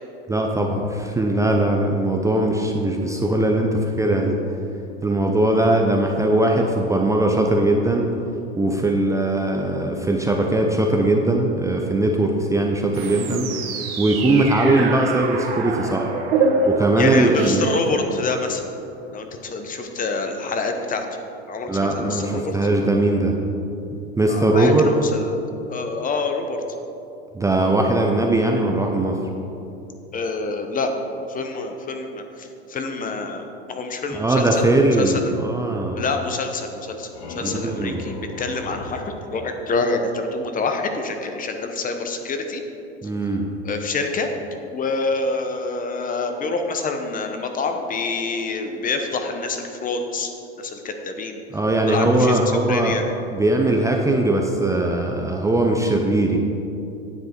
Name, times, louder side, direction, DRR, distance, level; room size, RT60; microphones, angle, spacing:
voice 1, 0.3-4.4 5.0-8.1 8.6-13.7 14.0-16.1 16.7-17.6 21.7-23.3 24.2-24.9 27.3-29.2 34.1-36.0 37.4-38.0 43.0-43.4 51.5-53.0 53.3-56.4, right 2 dB, 10° right, 1 dB, 0.6 m, -20 dB
sound 1, 12.9-18.6, right 3 dB, 65° right, 1.5 m, -25 dB
voice 2, 17.0-18.6 19.1-21.0 21.5-22.6 24.2-25.4 25.7-26.6 30.1-30.9 31.3-34.7 35.0-35.2 36.0-42.6 43.6-44.3 44.7-50.3 50.6-51.4 51.9-52.4 52.7-53.0, left 3 dB, 25° left, 5 dB, 0.9 m, -27 dB
sound 2, 36.7-40.4, left 1 dB, 80° left, 2.4 m, -37 dB
9.7 x 7.6 x 4.5 m, 2.8 s
hypercardioid pair, 105°, 32 cm